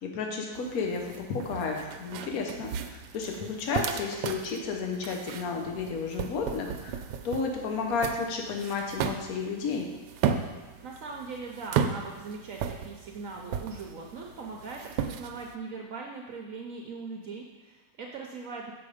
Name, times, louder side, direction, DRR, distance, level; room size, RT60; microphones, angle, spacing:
voice 1, 0.0-9.9, left 4 dB, 60° left, 1 dB, 1.4 m, -32 dB
sound 1, 0.6-15.5, right 7 dB, 85° right, 1.2 m, -35 dB
voice 2, 10.8-18.7, right 4 dB, 65° right, 0 dB, 0.9 m, -40 dB
7.1 x 5.3 x 4.9 m, 1.2 s
omnidirectional pair, 1.8 m